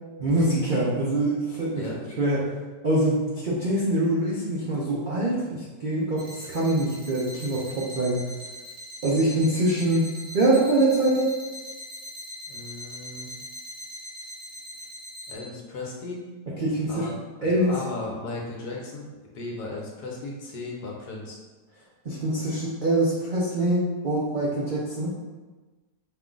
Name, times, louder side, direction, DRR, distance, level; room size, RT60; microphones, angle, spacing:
voice 1, 0.2-1.9 2.2-2.5 2.8-8.2 9.0-10.1 10.3-11.3 16.6-17.1 17.4-17.7 22.0-25.1, right 1 dB, 80° right, -5 dB, 0.4 m, -24 dB
sound 1, 6.2-15.3, left 1 dB, 45° right, 0.9 m, -40 dB
voice 2, 12.5-13.3 15.3-16.2 16.9-19.0 19.3-21.4, left 2 dB, 65° left, -2 dB, 1.4 m, -36 dB
5.6 x 2.4 x 3.8 m, 1.3 s
omnidirectional pair, 1.9 m